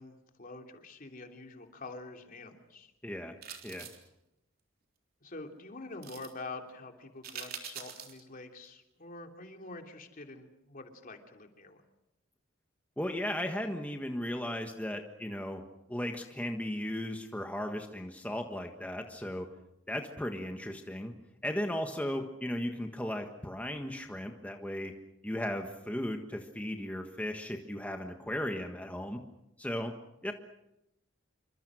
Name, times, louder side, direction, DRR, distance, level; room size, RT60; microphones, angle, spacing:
voice 1, 0.0-2.9 5.2-11.8, left 3 dB, 45° left, 3 dB, 3.1 m, -46 dB
voice 2, 3.0-3.3 3.6-3.9 13.0-15.6 15.9-19.5 19.9-21.1 21.4-24.9 25.2-29.2 29.6-29.9 30.2-30.3, left 1 dB, 10° left, 3 dB, 1.5 m, -36 dB
sound 1, 3.4-4.1 6.0-6.3 7.2-8.2 8.6-8.7, right 8 dB, 50° right, 3.6 m, -44 dB
27.5 x 25.0 x 6.4 m, 0.88 s
head